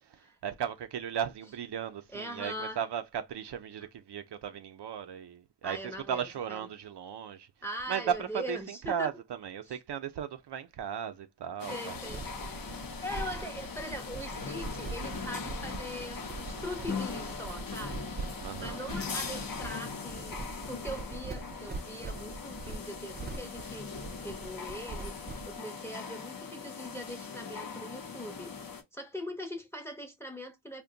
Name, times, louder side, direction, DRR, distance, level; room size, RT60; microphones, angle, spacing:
voice 1, 0.4-7.5 7.9-11.9 18.4-18.8, right 8 dB, 75° right, 0.6 m, -36 dB
voice 2, 2.1-2.8 5.6-6.7 7.6-9.1 9.7-9.8 11.7-12.2 13.0-18.1 18.6-23.9 24.2-25.1 25.5-28.5 28.9-30.8, equal, 5° left, 0.7 m, -41 dB
sound 1, 11.6-28.8, left 5 dB, 55° left, 0.7 m, -40 dB
sound 2, 11.9-25.6, right 3 dB, 25° right, 0.4 m, -43 dB
2.5 x 2.2 x 3.7 m
wide cardioid pair, 120°, 41 cm